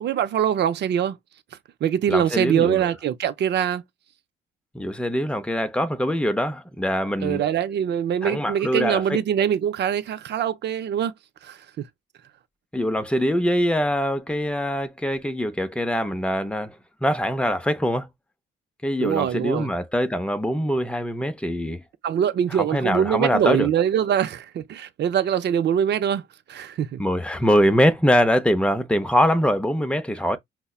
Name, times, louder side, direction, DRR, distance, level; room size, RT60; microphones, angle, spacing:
voice 1, 0.0-1.2 1.8-3.8 7.2-11.1 11.4-11.8 19.0-19.7 22.0-26.2 26.5-27.0, right 9 dB, 60° right, 0.6 m, -23 dB
voice 2, 2.1-2.8 4.7-7.4 8.2-9.2 12.7-16.8 17.0-18.1 18.8-21.8 22.5-23.7 27.0-30.4, equal, 5° left, 0.6 m, -23 dB
5.4 x 2.2 x 2.3 m
cardioid pair, 90°, 20 cm